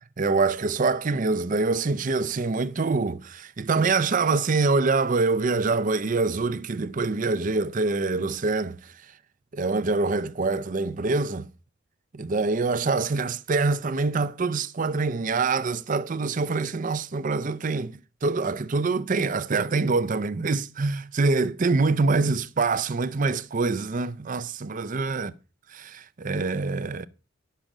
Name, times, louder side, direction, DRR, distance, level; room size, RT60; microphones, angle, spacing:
voice 1, 0.2-8.8 9.5-11.5 12.1-25.3 25.7-27.1, right 3 dB, 40° right, 0.5 m, -25 dB
10.0 x 6.8 x 6.0 m
head